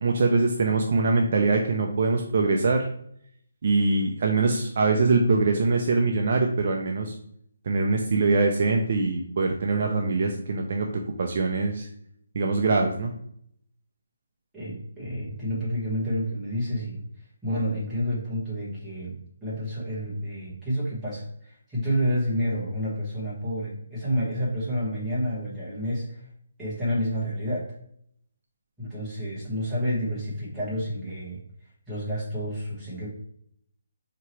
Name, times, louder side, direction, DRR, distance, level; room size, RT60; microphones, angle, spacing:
voice 1, 0.0-2.9 3.6-7.1 7.7-10.9 11.2-11.9 12.3-13.1, right 3 dB, 40° right, 2 dB, 0.4 m, -23 dB
voice 2, 14.5-17.0 17.4-26.3 26.6-27.7 28.8-31.4 31.9-33.1, equal, 5° right, -10 dB, 1.1 m, -29 dB
4.6 x 2.9 x 3.0 m, 0.68 s
hypercardioid pair, 175°, 0 cm